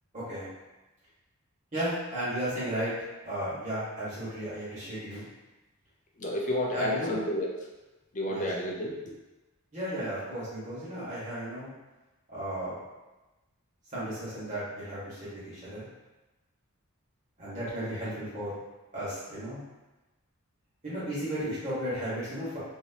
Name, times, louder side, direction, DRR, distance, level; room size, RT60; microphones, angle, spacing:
voice 1, 0.1-0.5 1.7-2.9 3.2-5.3 6.7-7.2 8.3-8.5 9.7-11.7 12.3-12.7 13.9-15.8 17.4-18.5 18.9-19.6 20.8-22.6, right 1 dB, 35° right, -11 dB, 1.5 m, -34 dB
voice 2, 6.2-7.5 8.1-9.0, left 1 dB, 35° left, -1 dB, 0.5 m, -30 dB
2.9 x 2.8 x 2.8 m, 1.1 s
head